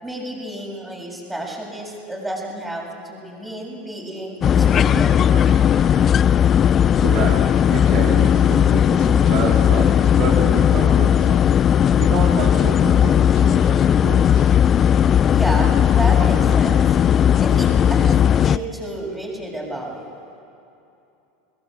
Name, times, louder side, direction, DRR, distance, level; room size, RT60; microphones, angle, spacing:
voice 1, 0.0-5.2 15.3-17.0 17.4-20.1, right 1 dB, 5° right, -2 dB, 7.2 m, -30 dB
sound 1, 4.4-18.6, left 9 dB, 35° left, 0.4 m, -16 dB
voice 2, 5.2-6.1 7.0-11.4 12.0-14.5, right 4 dB, 50° right, -2 dB, 3.5 m, -29 dB
21.5 x 21.5 x 8.3 m, 2.7 s
figure-of-eight pair, 80°, 0 cm